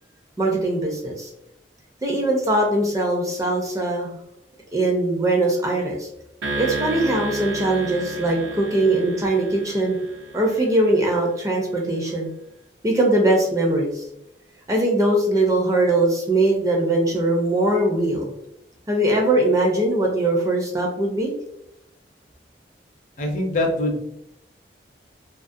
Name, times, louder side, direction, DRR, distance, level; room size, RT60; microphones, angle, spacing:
voice 1, 0.4-1.3 2.0-4.1 4.7-6.1 6.5-10.0 10.3-12.3 12.8-14.0 14.7-18.3 18.9-21.3, right 1 dB, 20° right, 0 dB, 0.4 m, -21 dB
sound 1, 6.4-10.9, right 3 dB, 75° right, 0.5 m, -32 dB
voice 2, 23.2-24.0, left 1 dB, 45° left, 2 dB, 0.4 m, -23 dB
2.3 x 2.1 x 2.5 m, 0.79 s
head